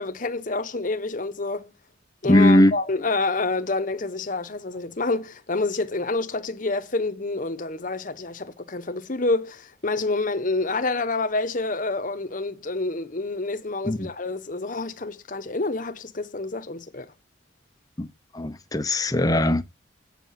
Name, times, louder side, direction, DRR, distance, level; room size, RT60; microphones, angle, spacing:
voice 1, 0.0-1.7 2.2-17.1, left 3 dB, 45° left, 0.9 m, -28 dB
voice 2, 2.2-2.7 13.8-14.1 18.0-18.1 18.3-19.6, left 1 dB, 20° left, 0.7 m, -19 dB
8.1 x 7.5 x 5.6 m
head